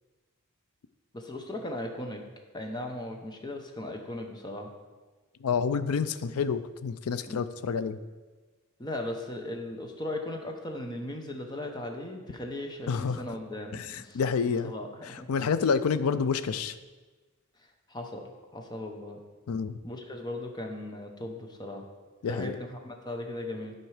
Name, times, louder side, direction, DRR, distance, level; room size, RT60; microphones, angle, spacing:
voice 1, 1.1-2.2 2.5-4.7 7.2-7.4 8.8-15.3 17.9-18.3 18.5-19.2 19.8-21.9 22.3-23.7, left 1 dB, 20° left, 3 dB, 0.8 m, -37 dB
voice 2, 5.4-8.0 12.9-13.2 13.7-14.7 15.1-16.8 19.5-19.7 22.2-22.6, left 6 dB, 75° left, 13 dB, 0.4 m, -28 dB
10.5 x 4.5 x 4.9 m, 1.3 s
head